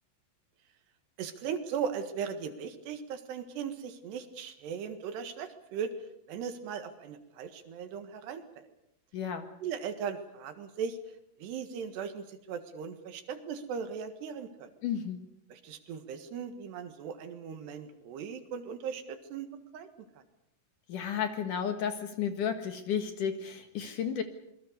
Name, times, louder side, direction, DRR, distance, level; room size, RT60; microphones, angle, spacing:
voice 1, 1.2-5.9 6.3-8.7 9.6-11.0 11.4-14.7 15.5-19.5 19.7-19.9, right 7 dB, 80° right, 8 dB, 3.8 m, -38 dB
voice 2, 9.1-9.5 14.8-15.2 20.9-24.2, left 8 dB, 60° left, 7 dB, 2.7 m, -33 dB
26.5 x 22.0 x 6.8 m, 0.80 s
omnidirectional pair, 4.9 m